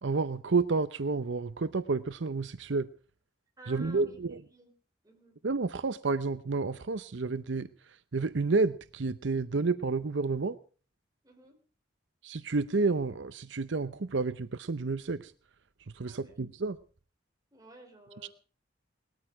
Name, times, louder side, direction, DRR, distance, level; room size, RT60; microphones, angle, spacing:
voice 1, 0.0-2.9 3.7-4.4 5.4-10.6 12.2-15.3 15.9-16.8 18.2-18.3, right 4 dB, 75° right, 0.7 m, -30 dB
voice 2, 3.6-4.2 4.5-4.7 5.0-5.4 11.2-11.6 16.0-16.4 17.5-18.3, right 1 dB, 20° right, 4.4 m, -53 dB
20.0 x 13.5 x 4.8 m
head